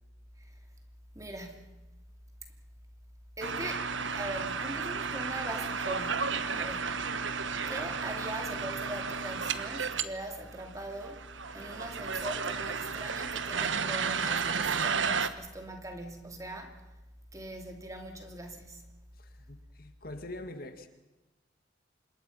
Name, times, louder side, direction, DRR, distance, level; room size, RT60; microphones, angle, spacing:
voice 1, 1.1-1.8 3.4-7.0 7.7-11.3 11.5-16.8 17.3-18.9, right 1 dB, 15° right, 2.7 m, -41 dB
sound 1, 3.4-10.0 10.3-10.4 10.5-15.3, right 5 dB, 85° right, 1.2 m, -33 dB
voice 2, 19.1-20.9, left 2 dB, 50° left, 1.9 m, -44 dB
27.0 x 21.5 x 5.6 m
head